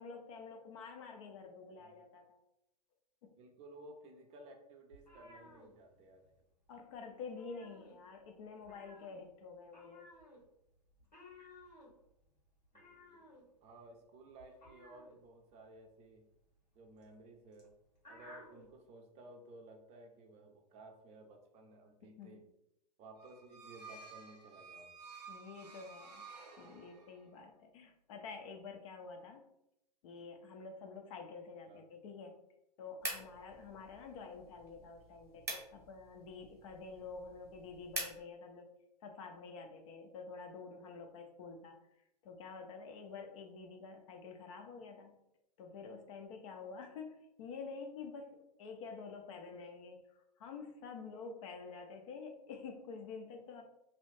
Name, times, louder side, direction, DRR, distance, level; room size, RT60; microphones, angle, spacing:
voice 1, 0.0-2.4 3.2-3.3 6.7-10.1 22.0-22.4 25.3-26.3 26.6-29.4 30.0-32.4 32.8-38.7 39.0-41.8 42.2-45.2 45.6-50.0 50.4-53.6, left 4 dB, 50° left, 4 dB, 0.5 m, -49 dB
voice 2, 3.4-6.2 12.7-16.2 16.8-17.7 18.1-22.4 23.0-24.9 31.7-31.8, right 2 dB, 30° right, 3 dB, 0.5 m, -56 dB
sound 1, 4.9-6.4 6.7-6.9 7.2-8.3 8.6-18.7, left 2 dB, 90° left, 1.4 m, -59 dB
sound 2, 23.2-27.3, right 4 dB, 75° right, 0.6 m, -53 dB
sound 3, 33.0-38.2, right 2 dB, 10° right, 1.0 m, -46 dB
2.8 x 2.3 x 3.1 m, 0.84 s
figure-of-eight pair, 100°, 21 cm